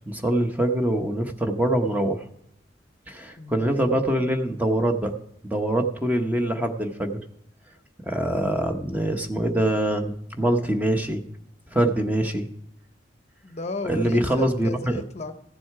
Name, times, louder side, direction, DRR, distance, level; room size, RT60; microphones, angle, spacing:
voice 1, 0.0-2.2 3.1-5.1 5.4-7.2 8.1-11.2 11.7-12.5 13.8-15.0, right 1 dB, 10° right, 5 dB, 0.9 m, -24 dB
voice 2, 3.4-4.3 13.4-15.3, left 2 dB, 40° left, 9 dB, 0.7 m, -35 dB
14.5 x 7.7 x 4.7 m, 0.75 s
head